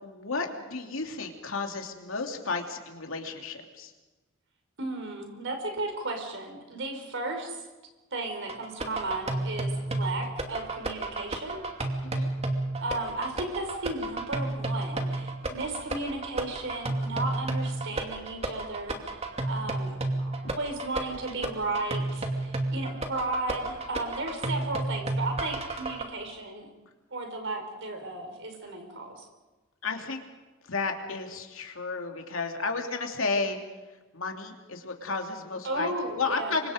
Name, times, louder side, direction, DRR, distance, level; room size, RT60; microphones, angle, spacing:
voice 1, 0.0-3.9 12.0-12.3 20.4-20.6 29.8-30.2 30.6-33.6 34.1-36.7, left 4 dB, 70° left, 3 dB, 2.9 m, -32 dB
voice 2, 4.8-7.6 8.1-11.6 12.8-26.7 27.1-29.2 35.6-36.5, right 2 dB, 65° right, 4 dB, 5.0 m, -34 dB
sound 1, 8.5-26.0, right 2 dB, 30° right, 2.7 m, -32 dB
29.0 x 24.5 x 5.2 m, 1.2 s
head